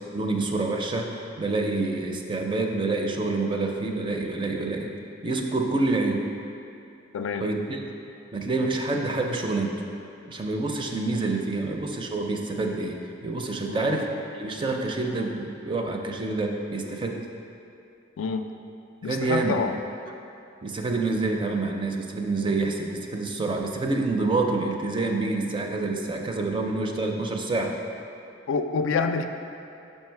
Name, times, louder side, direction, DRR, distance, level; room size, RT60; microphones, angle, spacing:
voice 1, 0.1-4.9 5.2-6.3 7.4-7.8 8.3-9.8 10.3-14.1 14.3-17.2 19.0-19.6 20.6-27.8, right 3 dB, 25° right, 2 dB, 0.4 m, -27 dB
voice 2, 7.1-7.5 13.7-14.0 18.2-18.5 19.0-19.8 28.5-29.3, left 5 dB, 85° left, 7 dB, 0.4 m, -27 dB
5.6 x 5.4 x 4.5 m, 2.7 s
head